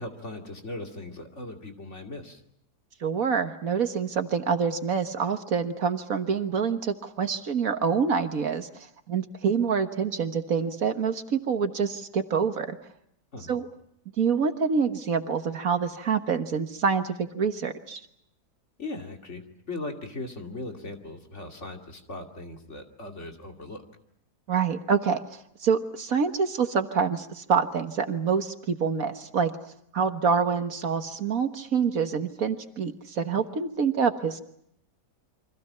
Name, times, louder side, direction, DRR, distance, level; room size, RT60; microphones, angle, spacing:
voice 1, 0.0-2.4 13.3-13.6 18.8-23.8, left 2 dB, 45° left, 3 dB, 2.9 m, -38 dB
voice 2, 3.0-12.8 13.5-13.7 14.2-18.0 24.5-34.4, right 6 dB, 60° right, 8 dB, 1.7 m, -26 dB
29.5 x 25.0 x 5.7 m, 0.73 s
omnidirectional pair, 1.7 m